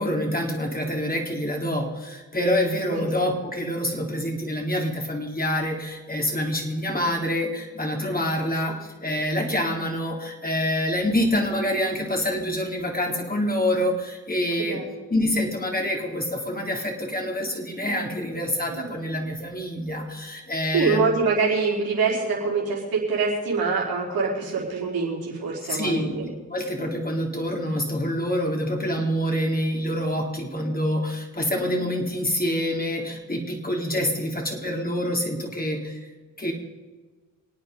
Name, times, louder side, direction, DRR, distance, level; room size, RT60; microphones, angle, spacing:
voice 1, 0.0-14.8 15.1-21.0 25.7-36.0 36.4-36.5, equal, 25° left, 1 dB, 4.0 m, -26 dB
voice 2, 14.6-14.9 18.7-18.9 20.7-26.3, right 4 dB, 80° right, -3 dB, 4.6 m, -25 dB
26.5 x 8.9 x 5.4 m, 1.3 s
supercardioid pair, 45°, 36 cm